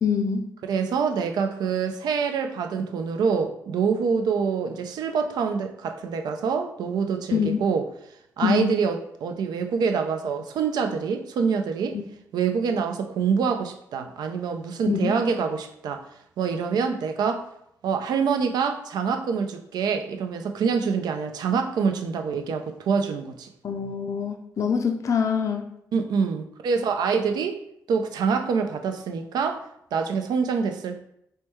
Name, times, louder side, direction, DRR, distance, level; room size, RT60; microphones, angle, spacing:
voice 1, 0.0-0.5 7.3-7.6 8.4-8.7 11.9-12.0 14.9-15.1 23.6-25.7, left 6 dB, 50° left, 5 dB, 0.4 m, -25 dB
voice 2, 0.6-7.9 8.4-12.0 12.3-16.1 16.4-17.5 17.8-23.5 25.9-27.6 27.9-31.0, right 6 dB, 75° right, 6 dB, 0.4 m, -26 dB
3.2 x 2.1 x 3.0 m, 0.76 s
supercardioid pair, 50°, 7 cm